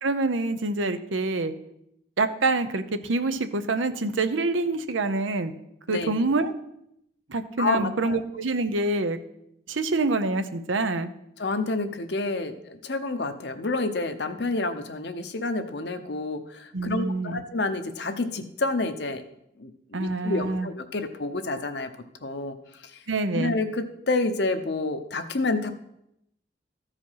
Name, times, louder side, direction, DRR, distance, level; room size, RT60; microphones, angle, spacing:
voice 1, 0.0-1.5 2.2-5.5 5.9-6.5 7.3-9.2 9.7-11.1 16.7-17.4 19.9-20.7 23.1-23.5, right 3 dB, 90° right, 10 dB, 0.8 m, -26 dB
voice 2, 7.6-8.2 11.4-19.2 19.6-21.9 22.2-22.6 22.9-23.0 23.3-25.7, left 3 dB, 60° left, 8 dB, 0.8 m, -29 dB
14.0 x 5.0 x 5.7 m, 0.79 s
head